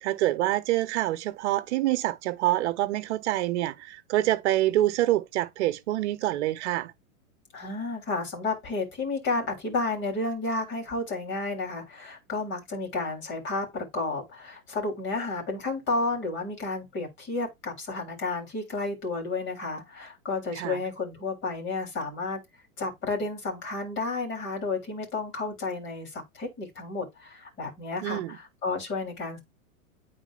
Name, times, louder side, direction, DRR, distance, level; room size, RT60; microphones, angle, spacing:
voice 1, 0.0-6.9 20.5-20.8 28.0-28.4, right 15 dB, 50° right, 1.0 m, -26 dB
voice 2, 7.5-22.4 22.8-29.4, left 3 dB, 25° left, 3.6 m, -31 dB
9.1 x 4.1 x 2.5 m
hypercardioid pair, 130°, 43 cm